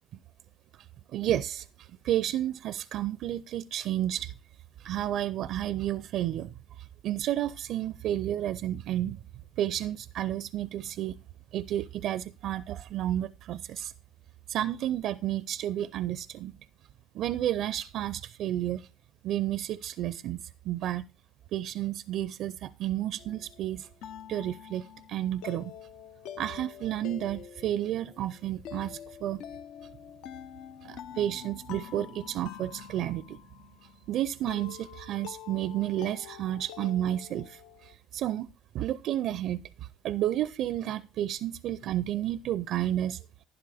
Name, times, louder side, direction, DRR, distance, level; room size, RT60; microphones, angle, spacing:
voice 1, 1.1-4.3 4.8-9.2 9.6-11.2 11.5-13.9 14.5-16.5 17.1-18.9 19.2-21.0 21.5-23.9 24.3-25.7 26.4-29.4 30.8-33.4 34.1-38.5 38.7-43.2, right 12 dB, 60° right, 0.4 m, -31 dB
sound 1, 23.2-37.9, left 10 dB, 70° left, 0.7 m, -46 dB
11.5 x 10.0 x 3.4 m
hypercardioid pair, 65°, 0 cm